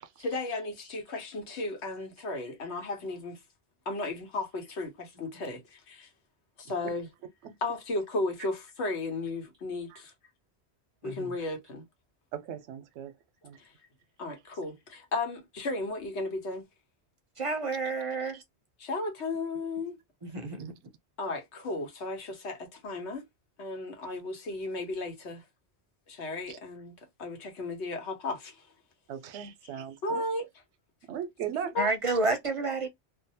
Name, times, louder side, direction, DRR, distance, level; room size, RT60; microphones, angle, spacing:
voice 1, 0.2-3.4 3.9-6.1 6.6-7.1 7.6-10.1 11.0-11.8 13.6-13.7 14.2-16.6 18.8-20.0 21.2-23.2 23.6-25.4 26.1-26.9 27.2-28.6 30.0-30.5 31.7-31.9, left 2 dB, 80° left, 1.2 m, -34 dB
voice 2, 12.3-13.1 13.4-13.6 18.3-18.4 20.6-20.7 26.5-26.6 29.1-30.2 31.1-31.8, right 9 dB, 85° right, 0.9 m, -38 dB
voice 3, 17.4-18.4 20.2-20.7 31.8-32.9, right 3 dB, 40° right, 0.5 m, -30 dB
2.7 x 2.0 x 2.7 m
omnidirectional pair, 1.1 m